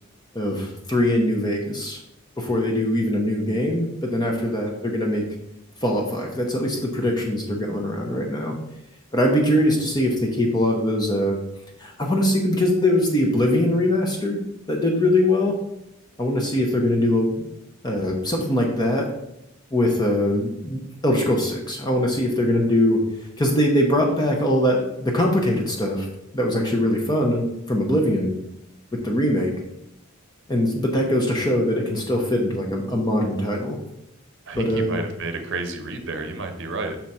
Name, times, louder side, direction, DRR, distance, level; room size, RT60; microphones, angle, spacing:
voice 1, 0.3-2.0 2.4-5.2 5.8-8.5 9.1-11.4 11.8-14.4 14.7-15.5 16.2-17.4 17.8-19.0 19.7-23.0 23.4-26.1 26.3-28.3 29.0-29.5 30.5-33.8 34.5-35.0, left 1 dB, 20° left, 1 dB, 0.7 m, -22 dB
voice 2, 34.5-37.0, right 3 dB, 55° right, 6 dB, 0.8 m, -31 dB
5.8 x 4.0 x 4.2 m, 0.84 s
head